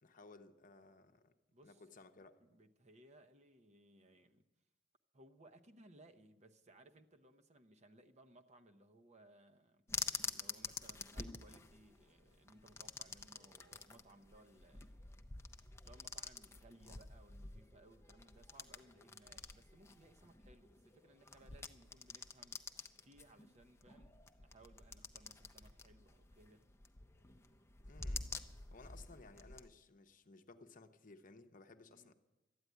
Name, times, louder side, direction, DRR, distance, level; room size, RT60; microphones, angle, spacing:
voice 1, 0.0-1.3 1.6-2.4 27.8-28.3 28.7-32.1, left 3 dB, 45° left, 0.8 m, -59 dB
voice 2, 1.5-1.8 2.4-4.4 5.1-9.8 10.2-15.1 15.8-22.6 23.0-26.6 31.9-32.1, right 1 dB, 40° right, 0.8 m, -64 dB
sound 1, 9.9-29.7, left 4 dB, 15° left, 0.6 m, -48 dB
13.0 x 9.6 x 9.2 m
head